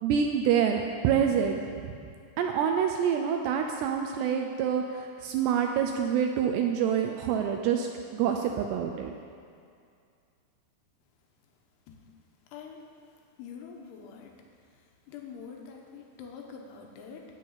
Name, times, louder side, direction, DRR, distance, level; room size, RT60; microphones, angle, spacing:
voice 1, 0.0-1.6 2.4-7.9 8.1-9.1, right 8 dB, 85° right, 3 dB, 2.4 m, -26 dB
voice 2, 12.5-12.8 13.4-14.3 15.1-17.2, left 6 dB, 75° left, 1 dB, 2.7 m, -45 dB
13.5 x 4.7 x 8.6 m, 2.3 s
omnidirectional pair, 5.5 m